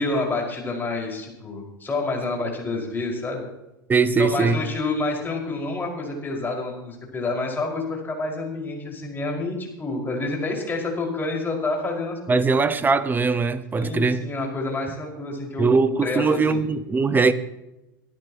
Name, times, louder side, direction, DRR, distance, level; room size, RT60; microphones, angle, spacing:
voice 1, 0.0-3.4 4.0-12.6 13.8-15.7 16.0-16.6, left 3 dB, 20° left, 5.3 m, -28 dB
voice 2, 3.9-4.6 12.3-14.2 15.6-17.3, right 4 dB, 15° right, 1.0 m, -20 dB
24.0 x 12.0 x 3.0 m
hypercardioid pair, 90°, 11 cm